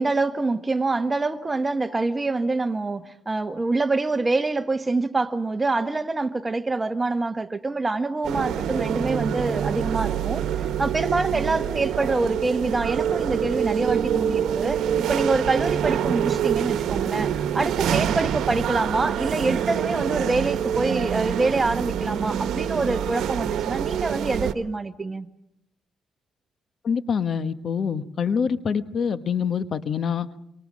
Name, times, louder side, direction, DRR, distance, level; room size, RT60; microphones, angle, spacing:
voice 1, 0.0-10.4 10.8-14.8 15.1-25.3, right 3 dB, 25° right, 1.4 m, -25 dB
sound 1, 8.2-24.5, right 9 dB, 80° right, 1.2 m, -26 dB
voice 2, 26.8-30.3, left 6 dB, 55° left, 1.2 m, -25 dB
26.5 x 26.0 x 6.3 m
cardioid pair, 90°, 0 cm